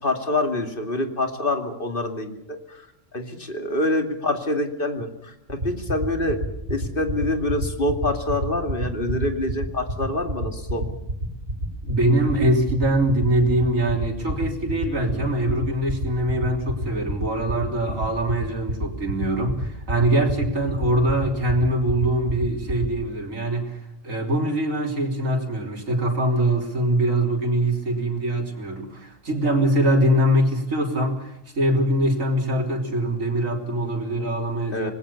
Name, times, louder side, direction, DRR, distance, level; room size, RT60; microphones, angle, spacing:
voice 1, 0.0-2.9 3.1-6.4 6.7-10.8 20.1-20.2 34.7-34.9, left 2 dB, 45° left, 6 dB, 2.7 m, -26 dB
sound 1, 5.5-22.9, right 1 dB, 55° right, 6.8 m, -27 dB
voice 2, 11.8-34.9, right 1 dB, 85° right, 2 dB, 3.9 m, -23 dB
26.5 x 20.0 x 7.0 m, 0.82 s
omnidirectional pair, 1.3 m